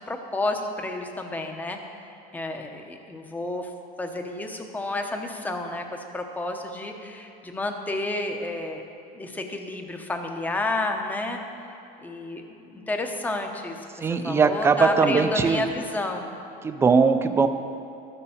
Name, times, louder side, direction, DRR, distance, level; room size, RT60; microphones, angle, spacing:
voice 1, 0.0-1.8 2.3-3.7 4.0-8.8 9.1-11.4 12.0-13.8 14.2-16.3, left 2 dB, 10° left, 4 dB, 0.8 m, -30 dB
voice 2, 14.0-15.6 16.6-17.5, right 5 dB, 15° right, 8 dB, 0.4 m, -20 dB
13.0 x 6.9 x 7.1 m, 2.8 s
cardioid pair, 170°, 19 cm